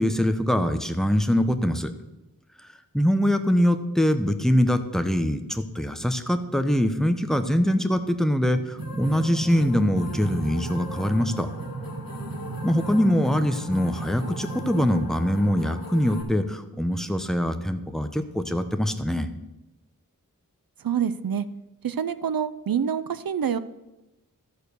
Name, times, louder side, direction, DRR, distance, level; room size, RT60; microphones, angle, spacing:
voice 1, 0.0-1.9 2.9-11.5 12.6-19.3, equal, ahead, 8 dB, 0.8 m, -23 dB
sound 1, 8.8-16.2, left 2 dB, 75° left, 1.6 m, -41 dB
sound 2, 8.8-14.9, right 3 dB, 65° right, 1.3 m, -35 dB
voice 2, 20.8-21.5 21.8-23.6, right 8 dB, 80° right, 14 dB, 0.5 m, -26 dB
13.5 x 4.5 x 6.7 m, 0.99 s
wide cardioid pair, 55°, 34 cm